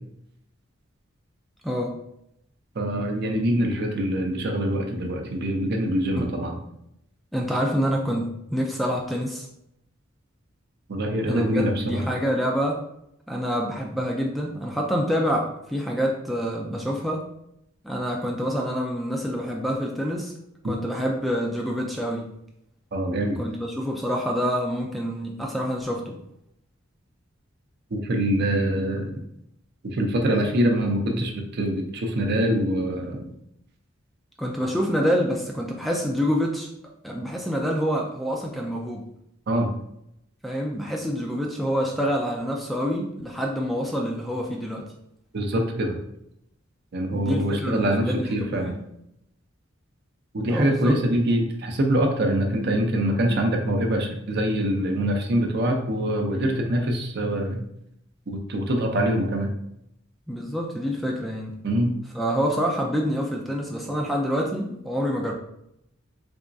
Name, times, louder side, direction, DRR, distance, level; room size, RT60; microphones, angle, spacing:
voice 1, 1.6-2.0 6.2-6.3 7.3-9.5 11.3-12.8 13.3-17.3 17.8-20.3 20.6-22.3 23.4-26.2 34.4-36.7 37.0-39.0 40.4-44.9 47.1-48.8 50.5-51.0 60.3-61.6 62.1-65.3, equal, ahead, -1 dB, 0.3 m, -27 dB
voice 2, 2.8-6.6 10.9-12.0 20.6-20.8 22.9-23.4 27.9-29.2 29.8-33.3 39.5-39.7 45.3-46.0 46.9-48.7 50.3-57.6 58.3-59.5 61.6-61.9, right 1 dB, 55° right, 2 dB, 0.6 m, -24 dB
3.5 x 3.0 x 2.6 m, 0.78 s
head